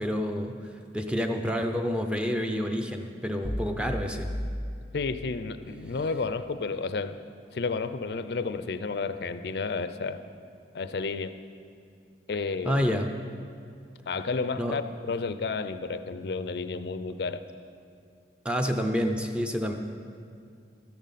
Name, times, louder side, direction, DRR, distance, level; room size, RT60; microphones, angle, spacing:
voice 1, 0.0-4.3 12.7-13.1 14.6-14.8 18.4-19.7, equal, 5° right, 4 dB, 0.5 m, -28 dB
sound 1, 3.4-5.7, equal, 40° right, 1.0 m, -35 dB
voice 2, 4.9-7.2 7.5-10.2 10.7-11.3 12.3-12.9 14.1-17.4, left 4 dB, 65° left, 12 dB, 0.4 m, -31 dB
13.0 x 10.5 x 4.1 m, 2.3 s
head